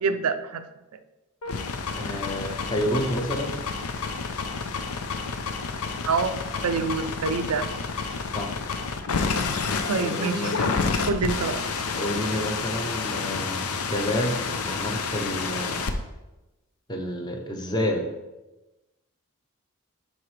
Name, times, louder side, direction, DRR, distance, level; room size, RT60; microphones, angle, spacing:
voice 1, 0.0-0.6 6.1-6.3 6.6-7.7 9.9-10.7 11.1-11.6, right 4 dB, 85° right, 9 dB, 0.5 m, -26 dB
sound 1, 1.4-15.9, left 4 dB, 85° left, 0.6 m, -29 dB
voice 2, 2.0-3.5 8.3-8.5 10.0-10.9 12.0-15.9 16.9-18.1, equal, 20° left, 3 dB, 0.7 m, -29 dB
10.5 x 4.1 x 3.3 m, 1.1 s
head